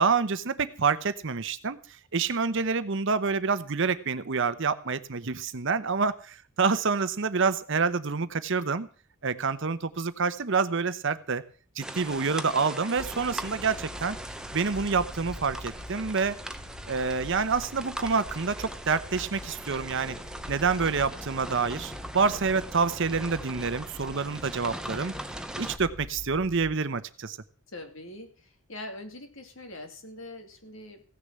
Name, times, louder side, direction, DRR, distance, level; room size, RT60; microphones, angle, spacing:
voice 1, 0.0-1.8 2.1-8.9 9.2-11.4 11.8-14.2 14.5-16.4 16.9-20.2 20.5-25.1 25.6-27.4, right 5 dB, 60° right, 13 dB, 0.8 m, -27 dB
sound 1, 11.8-25.8, right 1 dB, 5° right, 0.7 m, -40 dB
sound 2, 12.9-26.8, left 1 dB, 80° left, 2.1 m, -45 dB
voice 2, 27.7-31.0, left 1 dB, 60° left, 6 dB, 2.5 m, -43 dB
16.0 x 6.7 x 7.5 m, 0.42 s
head